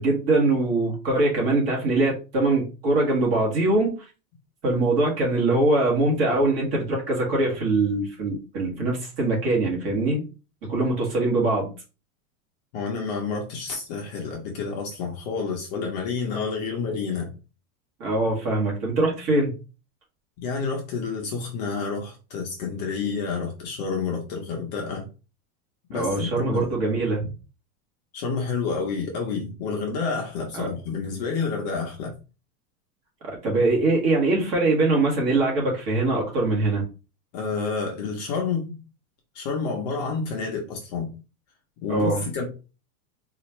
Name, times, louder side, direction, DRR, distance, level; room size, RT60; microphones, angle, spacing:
voice 1, 0.0-3.9 4.6-10.2 10.7-11.7 18.0-19.5 25.9-27.3 30.5-30.8 33.2-36.9 41.9-42.2, right 2 dB, 40° right, -1 dB, 1.7 m, -23 dB
voice 2, 12.7-17.3 20.4-25.1 25.9-26.7 28.1-32.1 37.3-38.8 39.3-41.1 41.8-42.4, left 5 dB, 30° left, 0 dB, 0.5 m, -29 dB
4.2 x 2.4 x 2.9 m, 0.32 s
supercardioid pair, 170°, 43 cm